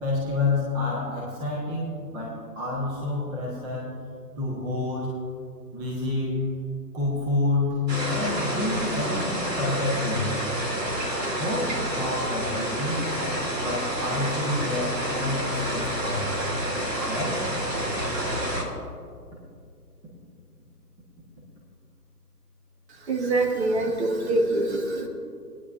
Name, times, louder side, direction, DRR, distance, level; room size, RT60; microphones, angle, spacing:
voice 1, 0.0-3.9 4.4-5.1 5.7-6.5 6.9-10.3 11.3-13.0 13.6-16.6 17.1-17.4 20.0-20.1, left 2 dB, 10° right, -4 dB, 0.9 m, -28 dB
sound 1, 7.9-18.6, right 1 dB, 90° right, 3.3 m, -29 dB
voice 2, 22.9-25.1, right 2 dB, 45° right, 2 dB, 1.6 m, -25 dB
22.5 x 9.8 x 2.5 m, 2.3 s
hypercardioid pair, 145°, 48 cm